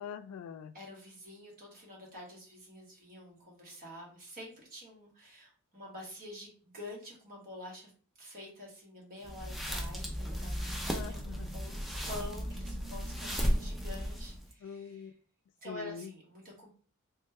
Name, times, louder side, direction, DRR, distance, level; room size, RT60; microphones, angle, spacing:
voice 1, 0.0-0.7 10.9-11.6 14.6-15.1 15.6-16.1, left 7 dB, 85° left, 15 dB, 0.3 m, -43 dB
voice 2, 0.7-7.9 8.2-11.2 11.5-15.1 15.6-16.7, left 1 dB, 40° right, -2 dB, 1.2 m, -48 dB
sound 1, 9.2-14.5, equal, ahead, 0.4 m, -35 dB
3.0 x 2.1 x 3.4 m, 0.43 s
head